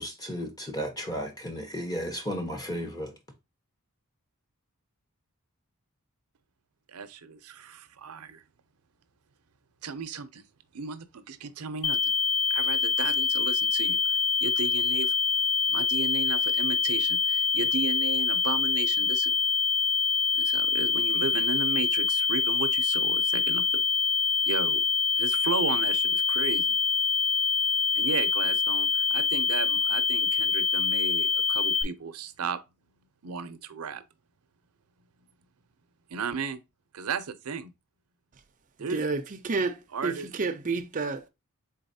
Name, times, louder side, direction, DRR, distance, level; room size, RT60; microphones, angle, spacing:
voice 1, 0.0-3.1, equal, 20° left, 1.0 m, -34 dB
voice 2, 6.9-8.4 9.8-10.4 10.7-12.1 12.5-15.1 15.7-19.3 20.3-23.8 24.4-24.8 25.2-26.8 27.9-32.6 33.2-34.0 36.1-36.6 36.9-37.7 38.8-39.0 39.9-40.3, right 5 dB, 85° right, 0.6 m, -35 dB
sound 1, 11.8-31.8, left 5 dB, 75° left, 0.5 m, -25 dB
voice 3, 38.9-39.8 40.0-41.3, right 4 dB, 35° right, 0.6 m, -30 dB
4.0 x 3.9 x 2.6 m
head